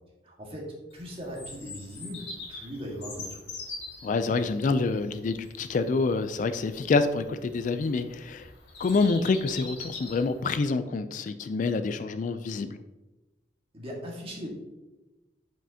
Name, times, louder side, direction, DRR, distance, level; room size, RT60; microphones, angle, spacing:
voice 1, 0.2-3.5 13.7-14.5, equal, 35° right, -2 dB, 1.7 m, -39 dB
Bird vocalization bird call bird song, 0.9-10.5, left 3 dB, 75° left, 1.8 m, -44 dB
voice 2, 4.0-8.5 8.8-12.8, left 4 dB, 45° left, 11 dB, 0.3 m, -27 dB
7.5 x 5.5 x 2.7 m, 1.1 s
head